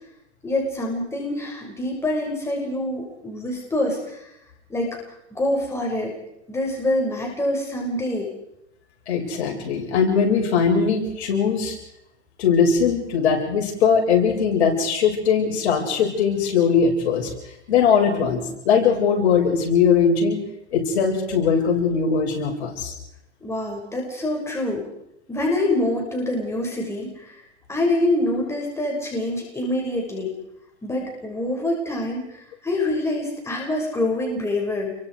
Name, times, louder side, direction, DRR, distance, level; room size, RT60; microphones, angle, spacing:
voice 1, 0.4-4.3 4.7-5.0 5.3-6.1 6.5-8.3 23.4-24.8 25.3-27.4 27.7-30.3 30.8-35.0, left 1 dB, 10° left, -1 dB, 6.3 m, -25 dB
voice 2, 9.1-11.8 12.4-17.3 17.7-20.4 20.7-22.9, left 6 dB, 65° left, 0 dB, 7.2 m, -20 dB
29.0 x 23.5 x 5.0 m, 0.81 s
hypercardioid pair, 135°, 34 cm